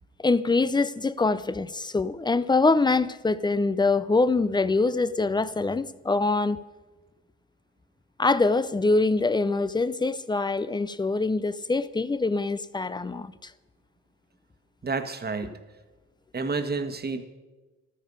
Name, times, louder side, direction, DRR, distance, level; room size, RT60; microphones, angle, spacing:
voice 1, 0.2-6.6 8.2-13.5, left 3 dB, 15° left, 0.6 m, -24 dB
voice 2, 14.8-15.6 16.3-17.3, right 4 dB, 30° right, 1.5 m, -30 dB
15.0 x 13.0 x 5.4 m
cardioid pair, 90°, 30 cm